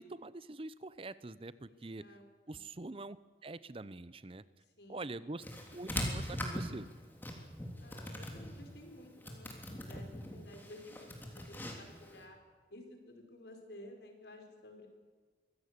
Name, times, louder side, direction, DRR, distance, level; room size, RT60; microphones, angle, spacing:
voice 1, 0.0-2.0 2.5-3.2 3.4-4.4 4.9-5.4 5.7-6.9, right 2 dB, 30° right, 16 dB, 0.6 m, -44 dB
voice 2, 1.7-2.6 4.6-5.2 7.8-12.4 12.7-14.9, left 1 dB, 75° left, 4 dB, 5.0 m, -54 dB
sound 1, 5.4-12.2, left 1 dB, 10° left, 3.3 m, -42 dB
24.0 x 16.5 x 8.3 m, 1.4 s
head